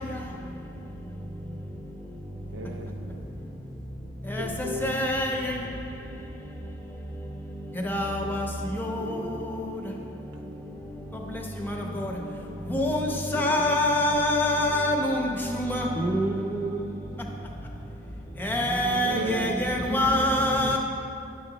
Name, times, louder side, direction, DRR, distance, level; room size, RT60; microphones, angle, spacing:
voice 1, 2.5-3.3 4.4-5.1 8.5-10.4 13.3-13.7 14.0-14.3 15.0-15.1 19.0-19.5 19.9-20.8, right 1 dB, 90° right, 0.6 m, -38 dB
voice 2, 4.3-5.6 7.8-8.5 8.8-9.1 11.6-12.1 12.7-15.9 18.4-20.8, left 1 dB, 10° left, 0.8 m, -25 dB
voice 3, 16.0-17.0 18.5-20.8, right 2 dB, 10° right, 0.4 m, -32 dB
10.0 x 6.3 x 4.0 m
head